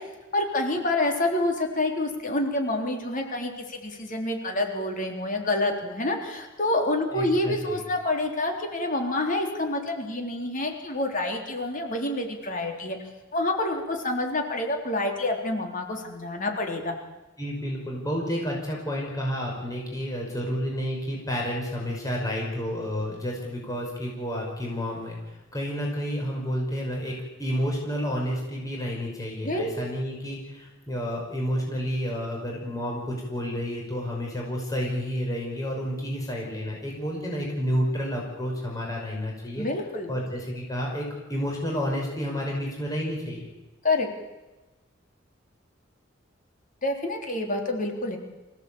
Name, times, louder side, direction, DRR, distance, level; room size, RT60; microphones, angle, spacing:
voice 1, 0.3-13.0 13.3-16.9 29.4-29.7 39.6-40.1 43.8-44.1 46.8-48.2, left 2 dB, 45° left, 2 dB, 3.7 m, -27 dB
voice 2, 7.1-7.8 17.4-27.1 27.4-39.7 40.1-43.5, equal, 20° left, -2 dB, 5.7 m, -30 dB
26.0 x 16.5 x 8.7 m, 1.1 s
head